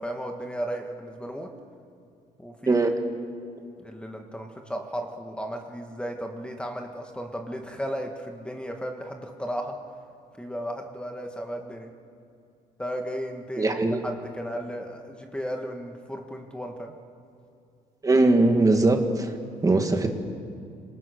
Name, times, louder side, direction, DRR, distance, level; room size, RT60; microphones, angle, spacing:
voice 1, 0.0-1.5 2.4-2.8 3.8-9.8 10.4-11.9 12.8-16.9, equal, 5° left, 3 dB, 1.6 m, -35 dB
voice 2, 13.6-14.0 18.0-19.3 19.6-20.1, right 2 dB, 20° right, 5 dB, 1.9 m, -20 dB
26.5 x 19.0 x 6.5 m, 2.6 s
cardioid pair, 125°, 16 cm